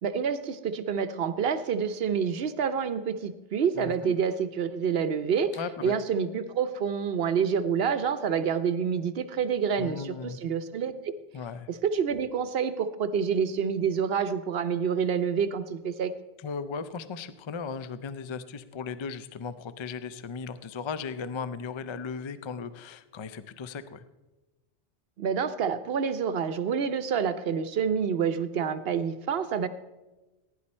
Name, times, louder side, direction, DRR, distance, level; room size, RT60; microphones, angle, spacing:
voice 1, 0.0-11.1 11.7-16.1 25.2-29.7, right 7 dB, 65° right, 11 dB, 0.8 m, -28 dB
voice 2, 3.7-4.1 5.5-5.9 9.8-10.4 11.3-11.7 16.4-24.0, left 5 dB, 50° left, 13 dB, 0.3 m, -37 dB
16.0 x 10.0 x 4.3 m, 1.1 s
omnidirectional pair, 1.2 m